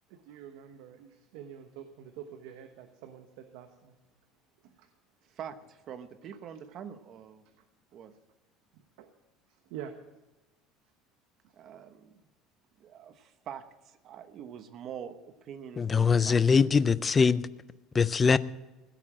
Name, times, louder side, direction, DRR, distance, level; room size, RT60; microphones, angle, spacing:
voice 1, 0.1-4.0 4.6-4.9 7.6-7.7 8.7-9.1 9.6-9.9 11.4-11.5, right 9 dB, 75° right, 7 dB, 1.2 m, -46 dB
voice 2, 5.3-7.4 7.9-8.1 11.5-12.2 12.8-15.2 15.4-16.4, right 8 dB, 35° right, 11 dB, 1.0 m, -44 dB
voice 3, 15.8-17.5 17.9-18.4, left 5 dB, 15° left, 17 dB, 0.4 m, -22 dB
16.0 x 8.7 x 7.6 m, 1.1 s
cardioid pair, 165°, 0 cm